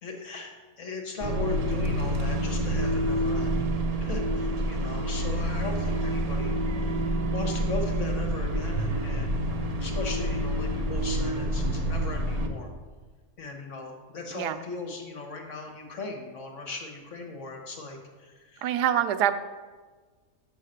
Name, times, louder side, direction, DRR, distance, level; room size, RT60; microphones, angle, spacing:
voice 1, 0.0-3.6 4.0-7.0 7.3-9.4 9.8-12.7 13.4-18.7, left 3 dB, 50° left, 2 dB, 1.3 m, -38 dB
sound 1, 1.2-12.5, right 1 dB, 65° right, 0.3 m, -28 dB
voice 2, 18.6-19.4, right 10 dB, 85° right, 11 dB, 1.1 m, -25 dB
6.4 x 5.7 x 6.5 m, 1.4 s
omnidirectional pair, 1.7 m